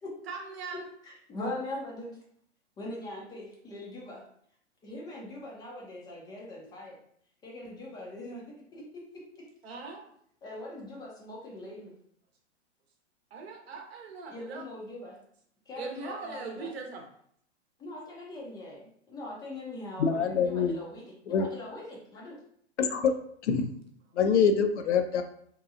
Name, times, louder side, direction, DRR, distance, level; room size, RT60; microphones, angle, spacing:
voice 1, 0.3-0.8 9.6-10.1 13.3-14.6 15.7-17.1, right 4 dB, 60° right, 2 dB, 0.8 m, -40 dB
voice 2, 1.0-2.2 2.8-4.2 4.8-7.0 7.4-9.7 10.4-11.9 14.3-15.2 15.7-16.7 17.8-22.4, left 1 dB, 10° left, -3 dB, 0.4 m, -42 dB
voice 3, 20.0-20.7 21.3-21.4 22.8-23.1 23.4-23.7 24.2-25.2, left 6 dB, 75° left, 7 dB, 0.5 m, -25 dB
2.8 x 2.2 x 2.4 m, 0.65 s
figure-of-eight pair, 110°, 35 cm